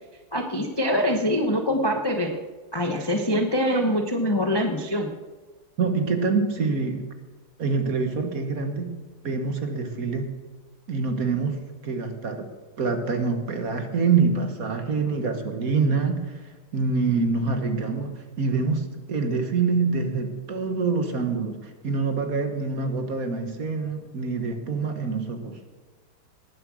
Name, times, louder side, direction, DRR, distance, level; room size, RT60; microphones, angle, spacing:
voice 1, 0.3-2.3 2.7-5.1, equal, 20° left, 4 dB, 0.7 m, -24 dB
voice 2, 5.8-7.1 7.6-8.9 9.2-10.3 10.9-12.5 12.8-16.4 16.7-25.6, right 4 dB, 50° right, 6 dB, 1.7 m, -26 dB
19.0 x 7.6 x 6.3 m, 1.3 s
omnidirectional pair, 2.1 m